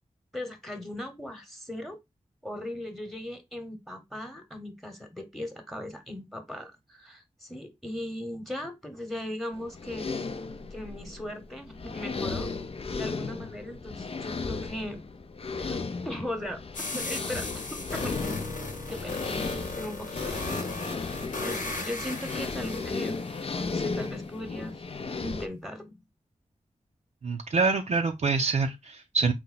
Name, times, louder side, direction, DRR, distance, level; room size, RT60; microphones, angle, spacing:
voice 1, 0.3-2.0 2.4-10.2 10.7-12.5 12.9-15.1 15.6-18.2 18.9-20.7 21.4-23.2 23.5-24.9 25.2-26.0, left 1 dB, ahead, 1.0 m, -38 dB
sound 1, 9.5-25.5, left 4 dB, 45° left, 0.5 m, -35 dB
sound 2, 16.7-23.7, left 3 dB, 90° left, 1.1 m, -36 dB
voice 2, 27.2-29.3, right 4 dB, 60° right, 0.5 m, -26 dB
4.2 x 2.3 x 3.9 m
cardioid pair, 55°, 13 cm